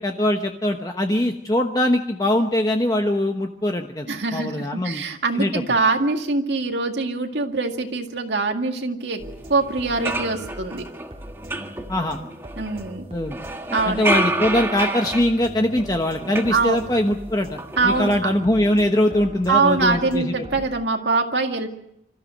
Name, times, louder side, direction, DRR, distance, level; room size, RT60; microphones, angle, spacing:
voice 1, 0.0-5.0 5.4-5.5 11.9-12.2 13.1-13.4 13.9-17.6 17.8-20.3, left 1 dB, 20° left, 4 dB, 1.0 m, -22 dB
voice 2, 4.1-9.2 9.5-10.8 12.6-13.0 13.7-14.1 16.5-16.8 17.8-18.1 19.5-21.7, right 3 dB, 80° right, 3 dB, 2.1 m, -23 dB
sound 1, 9.2-20.7, equal, 30° right, 1.9 m, -40 dB
sound 2, 9.4-9.5 9.8-12.9 13.3-17.2 17.5-18.2, right 2 dB, 15° right, 1.5 m, -29 dB
27.0 x 14.0 x 7.6 m, 0.79 s
head